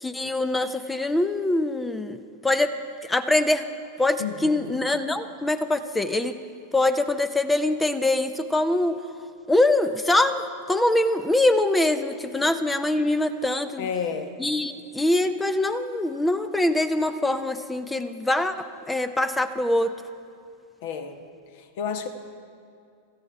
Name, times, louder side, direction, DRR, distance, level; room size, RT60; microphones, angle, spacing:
voice 1, 0.0-2.7 3.0-3.6 4.0-6.3 6.7-9.0 9.5-13.9 14.4-19.9, left 2 dB, 10° left, 11 dB, 0.6 m, -23 dB
voice 2, 4.2-4.8 12.4-12.5 13.8-14.4 20.8-21.2 21.5-22.1, left 6 dB, 50° left, 8 dB, 1.2 m, -31 dB
16.5 x 14.0 x 4.8 m, 2.4 s
figure-of-eight pair, 90°, 0 cm